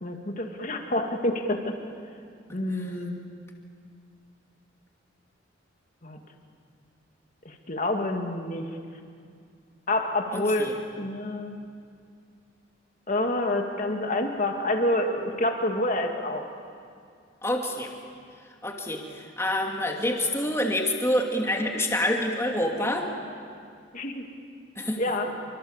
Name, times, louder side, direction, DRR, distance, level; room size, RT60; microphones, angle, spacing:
voice 1, 0.0-1.7 2.5-3.2 6.0-6.2 7.4-8.7 9.9-11.6 13.1-16.4 23.9-24.2 25.0-25.3, left 1 dB, 40° left, 3 dB, 2.4 m, -28 dB
voice 2, 10.3-10.7 17.4-17.9 18.6-23.1 24.8-25.0, left 1 dB, 15° left, 1 dB, 2.6 m, -27 dB
27.5 x 25.0 x 7.4 m, 2.3 s
head